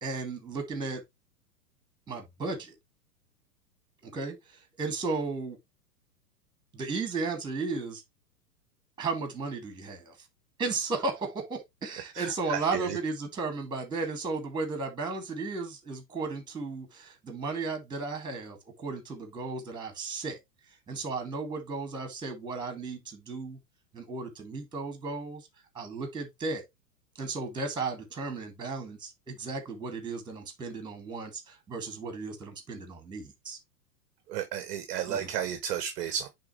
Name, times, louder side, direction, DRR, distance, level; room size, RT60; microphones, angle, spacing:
voice 1, 0.0-1.0 2.1-2.7 4.0-5.6 6.7-8.0 9.0-10.1 10.6-20.4 20.9-23.6 23.9-25.4 25.7-26.6 27.2-33.6 35.1-35.3, right 3 dB, 10° right, 2.1 m, -35 dB
voice 2, 12.1-13.0 34.3-36.3, right 9 dB, 30° right, 0.7 m, -33 dB
9.5 x 3.6 x 3.1 m
figure-of-eight pair, 105°, 49 cm